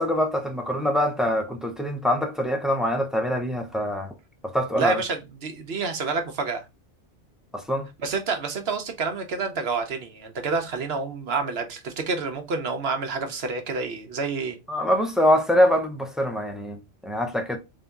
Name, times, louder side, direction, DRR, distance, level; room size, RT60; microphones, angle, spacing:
voice 1, 0.0-4.1 4.5-5.0 7.5-7.9 14.7-17.6, equal, ahead, 0.3 m, -24 dB
voice 2, 4.8-6.6 8.0-14.6, right 4 dB, 60° right, 1.0 m, -28 dB
3.7 x 2.7 x 3.4 m
omnidirectional pair, 1.2 m